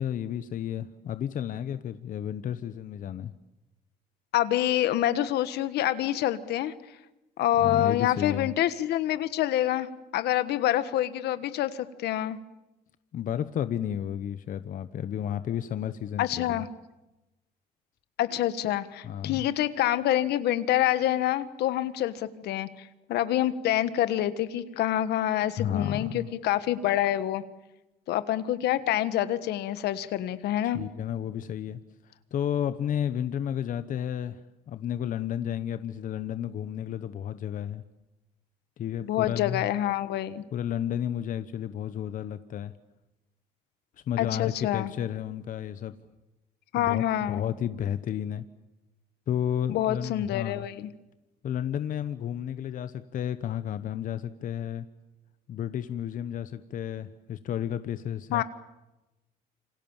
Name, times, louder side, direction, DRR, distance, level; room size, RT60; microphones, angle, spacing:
voice 1, 0.0-3.3 7.6-8.5 13.1-16.6 19.0-19.5 25.6-26.3 30.7-34.4 34.7-37.8 38.8-39.7 40.5-42.7 44.1-46.0 46.8-48.4 49.3-50.7 51.4-54.9 55.5-58.4, left 10 dB, 50° left, 12 dB, 1.0 m, -32 dB
voice 2, 4.3-6.7 7.4-12.4 16.2-16.7 18.2-27.4 28.1-30.8 39.0-40.4 44.2-44.9 46.7-47.4 49.7-50.9 58.3-58.4, left 12 dB, 75° left, 13 dB, 1.5 m, -27 dB
28.0 x 25.5 x 7.4 m, 1.0 s
cardioid pair, 110°, 17 cm